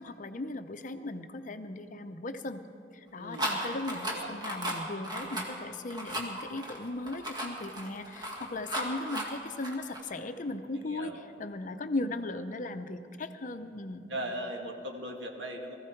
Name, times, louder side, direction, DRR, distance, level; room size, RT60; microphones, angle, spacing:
voice 1, 0.0-2.6 3.1-11.1 11.4-14.1, left 2 dB, 45° left, 9 dB, 0.7 m, -37 dB
voice 2, 3.2-3.6 4.1-4.3 10.1-10.3 10.7-11.2 14.1-15.8, right 1 dB, 75° right, 2 dB, 1.7 m, -39 dB
sound 1, 3.3-10.0, right 1 dB, 25° right, 1.8 m, -35 dB
19.0 x 14.5 x 4.6 m, 2.7 s
head